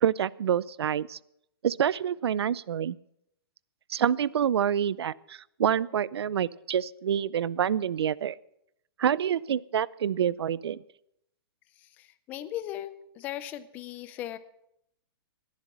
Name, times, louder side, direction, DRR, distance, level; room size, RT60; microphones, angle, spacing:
voice 1, 0.0-1.2 1.6-3.0 3.9-8.4 9.0-10.8, right 9 dB, 90° right, 22 dB, 0.5 m, -27 dB
voice 2, 11.8-14.4, left 12 dB, 10° left, 14 dB, 0.4 m, -38 dB
17.0 x 11.5 x 6.1 m, 0.79 s
hypercardioid pair, 175°, 13 cm